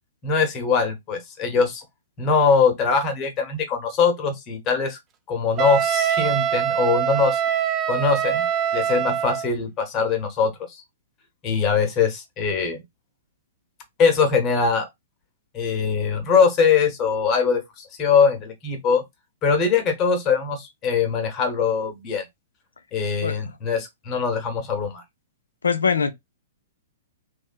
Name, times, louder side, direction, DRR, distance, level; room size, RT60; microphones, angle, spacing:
voice 1, 0.2-1.8 2.2-5.0 5.3-7.4 7.9-8.5 8.7-10.5 11.4-12.8 14.0-14.9 15.5-19.0 19.4-22.2 22.9-25.0, left 5 dB, 30° left, 0.9 m, -22 dB
Wind instrument woodwind instrument, 5.6-9.5, right 9 dB, 25° right, 0.4 m, -23 dB
voice 2, 23.2-23.5 25.6-26.1, left 6 dB, 75° left, 0.4 m, -22 dB
2.6 x 2.5 x 2.2 m
figure-of-eight pair, 110°, 0 cm